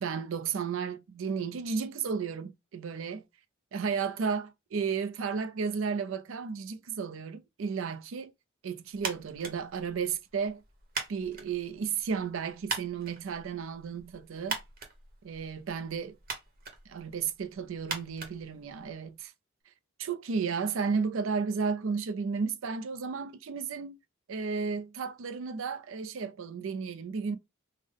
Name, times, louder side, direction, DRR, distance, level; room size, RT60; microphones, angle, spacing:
voice 1, 0.0-3.2 3.7-8.3 8.6-10.6 11.1-14.6 15.2-16.2 16.9-19.3 20.0-24.0 24.3-27.4, right 5 dB, 70° right, 0.4 m, -33 dB
sound 1, 9.0-19.2, right 4 dB, 45° right, 0.9 m, -42 dB
3.6 x 2.1 x 3.5 m
head